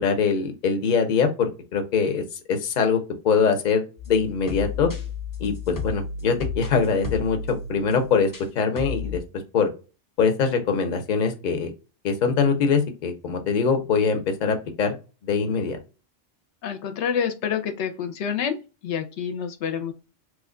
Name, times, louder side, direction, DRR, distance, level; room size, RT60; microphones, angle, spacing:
voice 1, 0.0-2.2 2.5-3.0 3.2-4.9 5.4-8.3 8.6-9.2 9.5-9.7 10.2-11.7 12.0-15.0 15.2-15.8, left 5 dB, 50° left, 6 dB, 0.7 m, -23 dB
sound 1, 4.0-8.5 8.8-9.2, left 5 dB, 30° left, 0.4 m, -33 dB
voice 2, 16.6-18.6 18.8-19.9, left 7 dB, 80° left, 6 dB, 0.9 m, -27 dB
3.1 x 2.1 x 3.6 m, 0.32 s
omnidirectional pair, 1.2 m